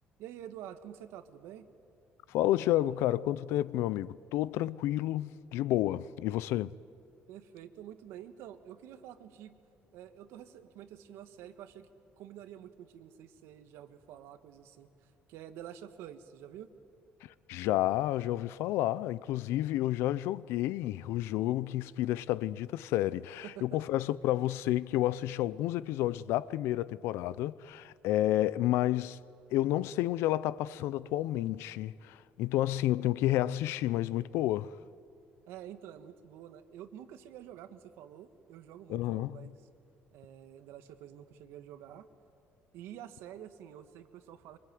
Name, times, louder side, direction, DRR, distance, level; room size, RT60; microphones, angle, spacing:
voice 1, 0.2-1.7 7.3-9.6 9.9-11.9 12.2-16.7 23.4-23.8 35.5-39.5 40.1-42.1 42.7-44.6, right 10 dB, 90° right, 1.7 m, -48 dB
voice 2, 2.3-6.7 17.5-29.2 29.5-34.7 38.9-39.5, left 14 dB, 90° left, 0.6 m, -30 dB
25.0 x 25.0 x 9.4 m
cardioid pair, 175°, 4 cm